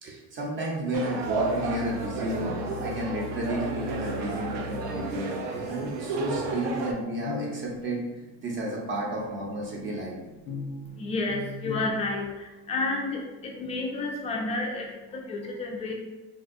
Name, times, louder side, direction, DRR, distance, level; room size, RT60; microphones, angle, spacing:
voice 1, 0.0-8.0 8.4-10.2, right 1 dB, 40° right, -3 dB, 0.5 m, -32 dB
sound 1, 0.9-6.9, right 2 dB, 85° right, 0.6 m, -32 dB
sound 2, 6.3-11.9, left 3 dB, 90° left, 0.5 m, -40 dB
voice 2, 10.9-15.9, left 2 dB, 20° left, 1 dB, 0.3 m, -31 dB
3.5 x 2.6 x 2.4 m, 1.1 s
cardioid pair, 170°, 33 cm